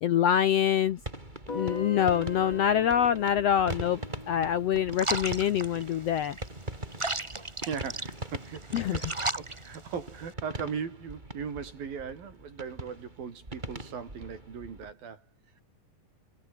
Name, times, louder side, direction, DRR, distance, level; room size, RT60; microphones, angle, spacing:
voice 1, 0.0-1.0 1.5-4.0 4.3-6.4 8.7-9.1, left 9 dB, 70° left, 1.5 m, -25 dB
sound 1, 0.8-14.9, right 1 dB, 10° right, 4.7 m, -42 dB
Guitar, 1.5-6.4, left 3 dB, 45° left, 8.0 m, -41 dB
sound 2, 4.9-10.3, right 2 dB, 55° right, 0.3 m, -36 dB
voice 2, 7.4-15.2, right 6 dB, 85° right, 5.7 m, -39 dB
omnidirectional pair, 4.0 m